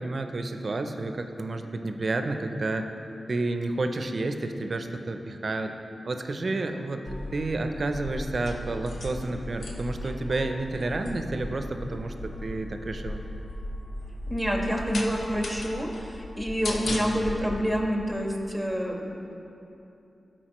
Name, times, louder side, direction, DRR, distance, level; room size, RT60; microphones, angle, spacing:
voice 1, 0.0-2.9 3.3-5.8 6.0-13.2, right 2 dB, 60° right, 6 dB, 0.5 m, -30 dB
sound 1, 7.1-17.6, left 1 dB, 75° left, 0.7 m, -37 dB
voice 2, 14.3-19.4, equal, 5° left, 0 dB, 1.4 m, -28 dB
12.5 x 4.4 x 3.0 m, 2.8 s
cardioid pair, 40°, 0 cm